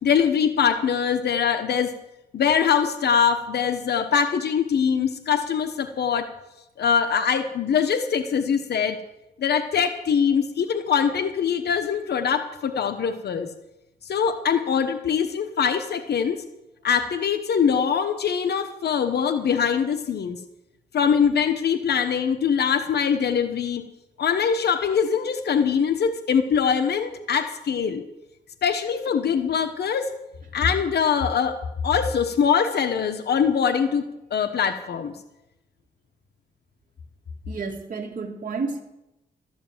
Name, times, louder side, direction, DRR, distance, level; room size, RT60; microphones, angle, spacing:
voice 1, 0.0-1.9 2.3-6.3 6.8-9.0 9.4-13.5 14.0-16.4 16.8-20.4 20.9-23.8 24.2-28.0 28.6-30.1 30.5-31.6 31.8-34.0 34.3-35.1, left 7 dB, 75° left, 8 dB, 1.1 m, -23 dB
voice 2, 37.5-38.8, right 4 dB, 55° right, 0 dB, 1.9 m, -31 dB
13.0 x 10.0 x 7.3 m, 0.91 s
cardioid pair, 95°, 17 cm